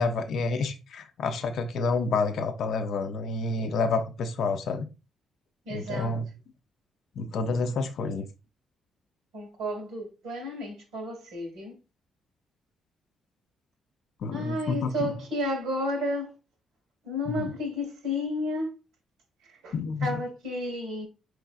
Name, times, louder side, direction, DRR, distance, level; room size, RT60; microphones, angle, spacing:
voice 1, 0.0-4.9 5.7-6.2 7.2-8.3 14.2-15.1 17.3-17.5 19.7-20.1, left 4 dB, 70° left, 0.5 m, -29 dB
voice 2, 5.6-6.2 9.3-11.8 14.3-16.4 17.0-18.8 19.4-19.7 20.0-21.1, left 1 dB, 90° right, 1.6 m, -32 dB
4.6 x 3.2 x 2.4 m
cardioid pair, 90°, 0 cm